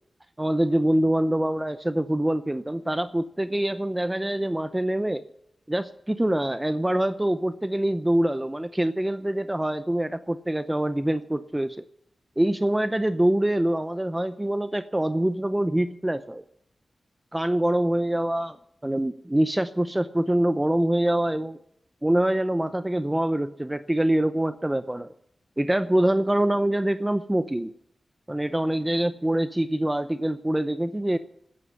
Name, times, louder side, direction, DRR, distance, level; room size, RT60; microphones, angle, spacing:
voice 1, 0.4-5.2 5.7-11.8 12.4-16.4 17.3-18.6 18.8-21.6 22.0-25.1 25.6-27.7 28.3-31.2, right 1 dB, 10° right, 11 dB, 0.6 m, -25 dB
13.0 x 9.9 x 9.6 m, 0.74 s
wide cardioid pair, 115°, 0 cm